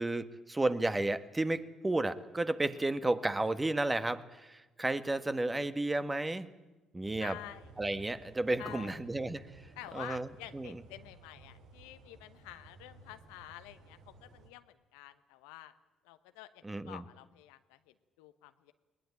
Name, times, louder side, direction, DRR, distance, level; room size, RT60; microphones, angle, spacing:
voice 1, 0.0-6.5 6.9-7.4 7.8-9.7 9.9-10.8 16.6-17.0, right 2 dB, 20° right, 12 dB, 1.6 m, -32 dB
sound 1, 7.0-14.5, right 3 dB, 70° right, 2.5 m, -56 dB
voice 2, 7.2-7.7 8.6-9.0 9.8-15.7 16.0-18.7, left 15 dB, 80° left, 12 dB, 1.0 m, -49 dB
20.5 x 20.0 x 8.9 m, 1.1 s
hypercardioid pair, 50°, 0 cm